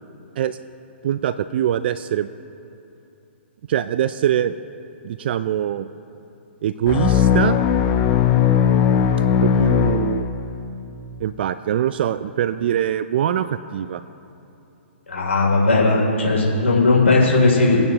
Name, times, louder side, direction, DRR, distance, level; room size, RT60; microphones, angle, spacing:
voice 1, 1.0-2.3 3.7-4.5 5.0-5.9 6.6-7.6 9.4-10.3 11.2-14.0, right 10 dB, 55° right, 13 dB, 0.4 m, -23 dB
sound 1, 6.9-10.7, left 8 dB, 35° left, 0.7 m, -18 dB
voice 2, 15.1-17.8, left 3 dB, 80° left, -3 dB, 3.0 m, -17 dB
24.0 x 9.0 x 2.9 m, 2.8 s
hypercardioid pair, 130°, 7 cm